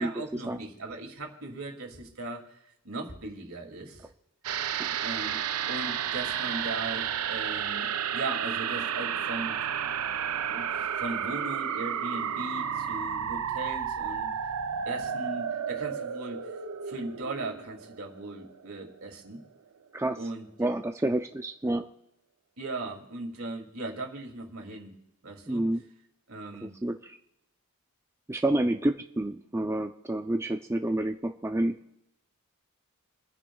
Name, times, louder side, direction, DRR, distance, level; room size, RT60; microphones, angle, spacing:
voice 1, 0.0-2.6 2.8-4.1 5.0-5.4 5.7-9.6 10.0-14.3 14.9-16.4 16.9-19.4 20.2-20.5 22.6-24.9 25.2-25.6 26.3-26.7, right 2 dB, 70° right, 2 dB, 2.5 m, -38 dB
sound 1, 4.4-19.1 19.4-19.5, right 8 dB, 85° right, 0.6 m, -32 dB
voice 2, 20.6-21.8 25.5-25.8 26.6-27.0 28.3-31.7, right 1 dB, 10° right, 4 dB, 0.4 m, -28 dB
29.0 x 9.8 x 2.3 m, 0.84 s
head